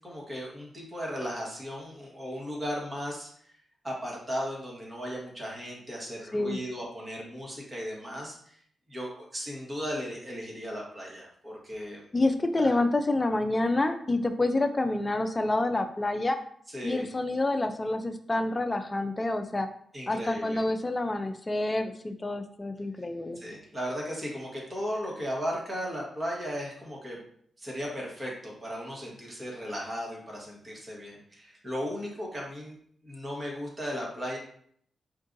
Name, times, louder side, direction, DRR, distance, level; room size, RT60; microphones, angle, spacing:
voice 1, 0.0-3.3 3.8-8.5 8.9-12.0 12.6-12.8 16.7-17.0 19.9-20.6 23.4-27.2 27.6-32.7 33.0-34.4, equal, 35° right, -3 dB, 1.4 m, -36 dB
voice 2, 12.1-16.4 16.8-19.7 20.1-23.4, left 2 dB, 30° left, 8 dB, 0.4 m, -28 dB
4.5 x 2.4 x 2.6 m, 0.63 s
cardioid pair, 60°, 0 cm